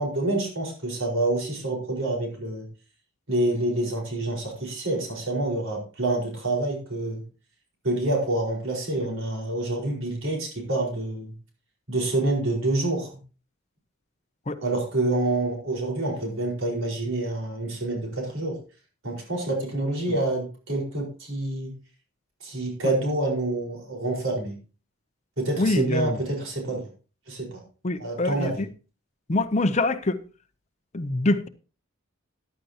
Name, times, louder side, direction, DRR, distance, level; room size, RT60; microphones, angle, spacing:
voice 1, 0.0-2.7 3.3-7.2 7.8-11.3 11.9-13.1 14.6-18.6 19.0-21.7 22.4-24.6 25.4-26.9 27.3-27.6 28.0-28.7, right 2 dB, 70° right, 4.8 m, -27 dB
voice 2, 25.6-26.2 27.8-28.7 29.3-30.2 30.9-31.5, left 2 dB, 35° left, 0.7 m, -25 dB
14.5 x 10.5 x 2.9 m
head